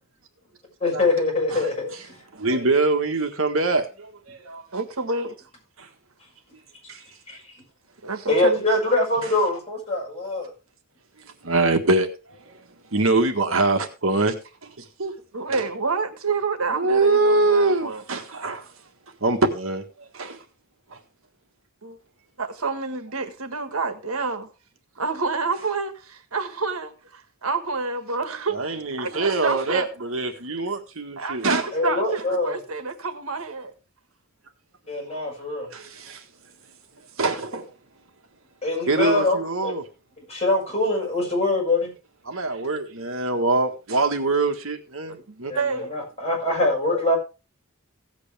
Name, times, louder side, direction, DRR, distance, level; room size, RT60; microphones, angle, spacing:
voice 1, 0.8-2.1 7.3-7.4 8.3-10.5 31.7-32.5 34.9-35.7 38.6-39.8 40.3-41.9 45.5-47.2, left 2 dB, 30° left, 6.4 m, -23 dB
voice 2, 1.5-2.0 2.3-4.7 5.8-5.9 6.9-7.0 11.4-12.6 12.9-14.3 14.8-15.1 15.5-15.6 16.7-18.7 19.2-20.4 20.9-21.0 28.5-31.6 35.7-36.2 37.2-37.7 38.9-39.8 42.3-45.5, right 3 dB, 65° right, 1.7 m, -24 dB
voice 3, 4.7-5.3 8.0-8.6 9.2-9.3 15.3-18.0 21.8-22.0 22.4-24.5 25.0-29.9 31.2-33.7 45.1-45.9, right 4 dB, 85° right, 1.6 m, -28 dB
16.5 x 8.2 x 3.5 m
head